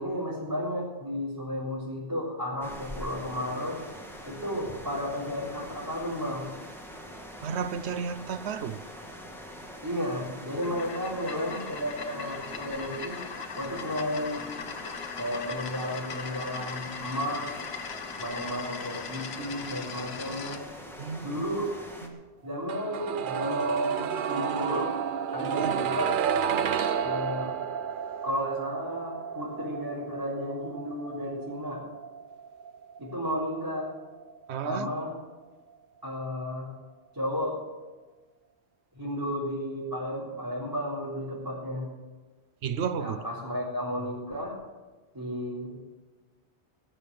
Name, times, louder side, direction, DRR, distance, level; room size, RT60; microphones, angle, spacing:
voice 1, 0.0-3.8 4.2-6.5 9.8-13.2 13.5-14.6 15.2-17.5 18.2-20.6 21.2-21.7 22.4-24.9 25.3-26.2 27.0-27.5 28.2-31.8 33.0-33.9 34.6-35.1 36.0-36.7 37.1-37.6 38.9-41.9 43.0-44.6 45.1-45.7, equal, 20° right, -8 dB, 4.2 m, -33 dB
sound 1, 2.6-22.1, equal, ahead, 1.9 m, -44 dB
voice 2, 7.4-8.8 21.0-21.5 22.0-22.2 25.6-25.8 34.5-34.9 42.6-43.2, right 7 dB, 80° right, 12 dB, 1.0 m, -32 dB
sound 2, 10.5-20.6, left 6 dB, 70° left, 1.2 m, -39 dB
sound 3, 22.7-34.5 34.8-34.9, right 8 dB, 55° right, 0.7 m, -31 dB
20.0 x 6.8 x 7.6 m, 1.3 s
omnidirectional pair, 1.1 m